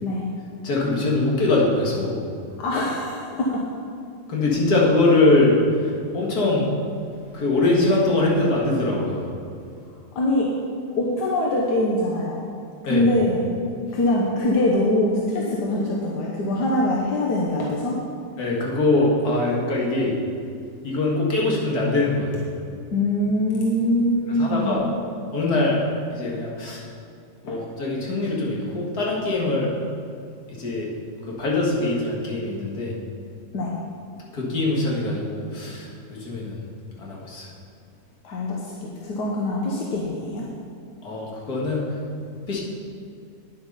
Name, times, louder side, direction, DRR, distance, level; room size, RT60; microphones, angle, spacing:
voice 1, 0.6-2.2 4.3-6.7 7.3-9.3 12.9-13.1 18.4-20.2 20.8-22.4 24.3-24.8 25.3-25.8 26.1-26.8 27.4-29.7 30.5-30.9 31.2-33.0 34.3-36.6 37.0-37.5 41.0-42.0 42.5-42.6, left 2 dB, 70° left, -3 dB, 2.4 m, -22 dB
voice 2, 2.6-3.6 10.1-10.5 11.0-12.4 12.9-13.7 13.9-18.0 22.9-24.8 27.5-27.6 33.5-33.7 38.2-40.5, left 1 dB, 85° left, -3 dB, 1.7 m, -23 dB
9.4 x 8.3 x 5.5 m, 2.4 s
omnidirectional pair, 1.7 m